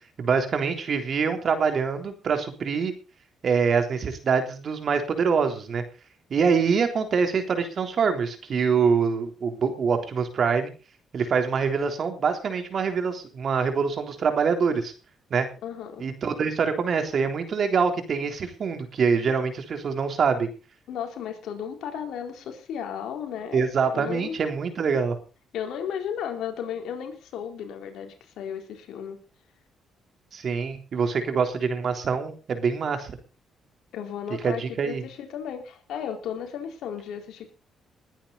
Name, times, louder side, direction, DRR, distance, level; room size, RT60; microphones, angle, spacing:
voice 1, 0.2-2.9 3.4-5.8 6.3-10.7 11.1-14.9 15.3-15.5 16.0-20.5 23.5-25.2 30.3-33.2 34.4-35.0, right 5 dB, 55° right, 6 dB, 3.6 m, -25 dB
voice 2, 15.6-16.1 20.9-23.6 23.9-24.4 25.5-29.2 33.9-37.5, left 8 dB, 80° left, 4 dB, 4.2 m, -34 dB
21.0 x 10.0 x 4.0 m, 0.33 s
cardioid pair, 90°, 0 cm